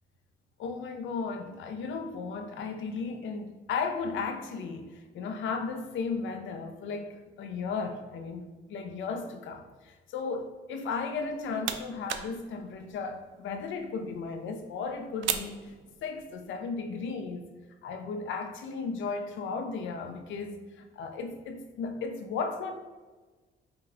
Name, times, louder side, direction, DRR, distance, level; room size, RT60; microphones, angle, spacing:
voice 1, 0.6-8.4 8.7-15.7 16.0-17.4 17.8-22.7, left 4 dB, 75° left, 0.6 m, -35 dB
sound 1, 11.1-16.4, right 9 dB, 70° right, 0.4 m, -39 dB
5.4 x 2.3 x 3.5 m
cardioid pair, 90°, 20 cm